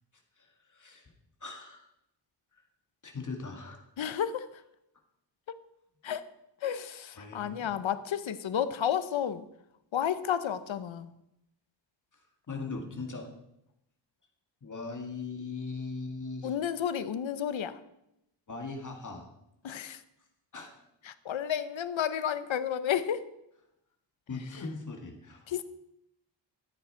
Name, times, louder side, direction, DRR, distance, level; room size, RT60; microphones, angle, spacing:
voice 1, 0.4-1.1 1.4-1.9 2.5-2.6 3.0-3.8 7.2-7.8 12.1-12.2 12.5-13.3 14.6-16.6 18.5-19.3 20.5-20.8 24.3-25.6, left 4 dB, 40° left, 3 dB, 2.0 m, -40 dB
voice 2, 4.0-4.5 6.0-6.2 6.6-9.4 9.9-11.1 16.4-17.8 19.6-20.0 21.1-23.3 25.5-25.6, left 9 dB, 85° left, 13 dB, 0.9 m, -31 dB
13.5 x 8.7 x 4.4 m, 0.83 s
wide cardioid pair, 160°, 45 cm